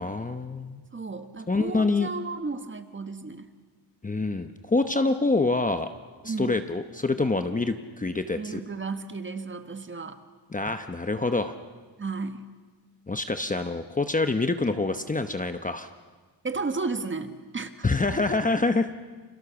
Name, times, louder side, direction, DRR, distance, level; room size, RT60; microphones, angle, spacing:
voice 1, 0.0-0.8 1.5-2.1 4.0-5.9 6.2-8.6 10.5-11.5 13.1-15.9 17.8-18.9, left 3 dB, 20° left, 8 dB, 0.9 m, -26 dB
voice 2, 0.9-3.5 6.2-6.6 8.4-10.2 12.0-12.5 16.4-17.7, right 4 dB, 30° right, 8 dB, 1.5 m, -33 dB
29.0 x 26.5 x 7.1 m, 1.3 s
wide cardioid pair, 170°, 42 cm